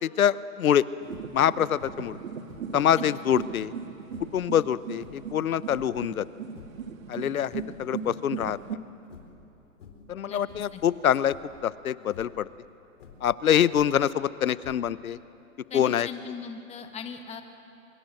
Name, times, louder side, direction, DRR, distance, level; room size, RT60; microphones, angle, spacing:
voice 1, 0.0-0.9 1.3-2.2 2.7-3.7 4.3-6.2 7.1-8.6 10.1-11.3 11.6-12.5 13.2-15.2 15.7-16.1, left 9 dB, 80° left, 18 dB, 0.9 m, -25 dB
sound 1, 1.0-1.5 1.8-2.2 2.5-3.6 4.0-4.4 4.9-6.1 6.4-6.9 7.3-8.1 8.4-8.7 9.0-9.5 9.8-10.2 10.5-10.8 11.3-11.6 12.0-12.4 12.9-14.1 14.6-15.1, left 6 dB, 60° left, 4.1 m, -50 dB
sound 2, 1.0-8.8, right 7 dB, 70° right, 1.8 m, -38 dB
voice 2, 15.7-17.4, left 6 dB, 15° left, 5 dB, 1.9 m, -38 dB
25.0 x 23.0 x 7.8 m, 2.9 s
hypercardioid pair, 130°, 42 cm